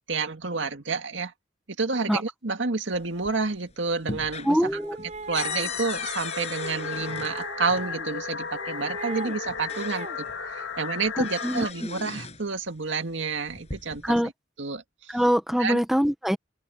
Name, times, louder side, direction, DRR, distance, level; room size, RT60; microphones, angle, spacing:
voice 1, 0.1-1.3 1.8-4.6 5.3-14.2 14.6-15.2 15.6-15.8, right 4 dB, 75° right, 2.0 m, -29 dB
sound 1, 2.9-3.6 3.9-7.9 9.0-9.1 9.5-10.4 10.8-12.5 13.4-14.2, left 5 dB, 35° left, 7.4 m, -38 dB
voice 2, 4.4-5.0 11.2-11.7 14.0-14.3 15.1-16.4, equal, ahead, 1.3 m, -23 dB
sound 2, 4.7-5.8 6.8-8.1 8.5-9.4 9.7-10.2, right 3 dB, 40° right, 6.4 m, -40 dB
sound 3, 5.4-11.7, left 5 dB, 90° left, 3.6 m, -35 dB
head